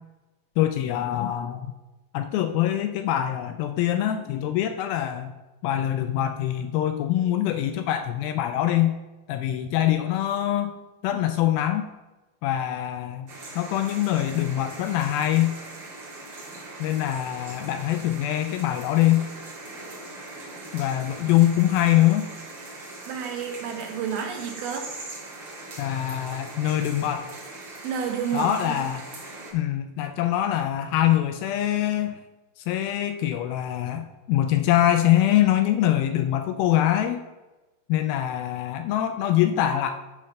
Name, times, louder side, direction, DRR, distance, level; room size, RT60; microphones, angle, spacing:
voice 1, 0.6-1.7 2.1-5.3 5.6-8.9 9.3-10.7 11.0-11.9 12.4-15.6 16.8-19.3 20.7-22.3 25.8-27.3 28.3-29.1 29.5-32.2 32.6-37.2 37.9-39.9, left 12 dB, 80° left, 7 dB, 2.2 m, -24 dB
sound 1, 13.3-29.5, right 2 dB, 40° right, 2.1 m, -41 dB
voice 2, 23.1-24.9 27.8-28.8, right 7 dB, 75° right, 3 dB, 2.9 m, -30 dB
9.4 x 4.3 x 6.6 m, 1.1 s
omnidirectional pair, 4.6 m